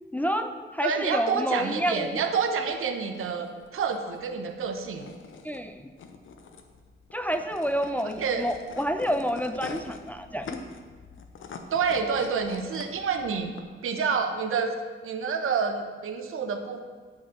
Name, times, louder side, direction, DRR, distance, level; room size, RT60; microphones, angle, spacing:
voice 1, 0.1-2.2 5.4-5.9 7.1-10.6, equal, 5° left, 7 dB, 0.4 m, -29 dB
voice 2, 0.8-5.1 8.2-8.5 11.7-13.5 13.8-14.7 15.0-16.8, right 5 dB, 80° right, 6 dB, 1.0 m, -28 dB
sound 1, 1.7-13.6, left 5 dB, 65° left, 0.8 m, -45 dB
10.0 x 4.8 x 7.2 m, 1.4 s
wide cardioid pair, 165°, 21 cm